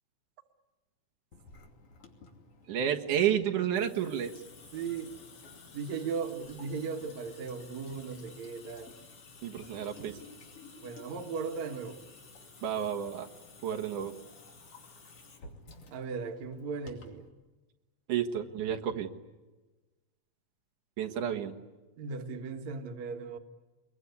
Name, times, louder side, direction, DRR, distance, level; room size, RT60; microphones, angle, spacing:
Water tap faucet / Sink (filling or washing) / Drip, 1.3-17.3, left 3 dB, 50° left, 3.6 m, -53 dB
voice 1, 2.7-4.4 9.4-10.2 12.6-13.3 13.6-14.2 18.1-19.1 21.0-21.5, right 9 dB, 85° right, 3 dB, 3.0 m, -31 dB
voice 2, 4.7-5.1 5.7-8.9 10.8-12.0 15.9-17.3 22.0-23.4, right 5 dB, 65° right, 6 dB, 2.8 m, -37 dB
26.0 x 22.0 x 9.6 m, 1.2 s
omnidirectional pair, 3.4 m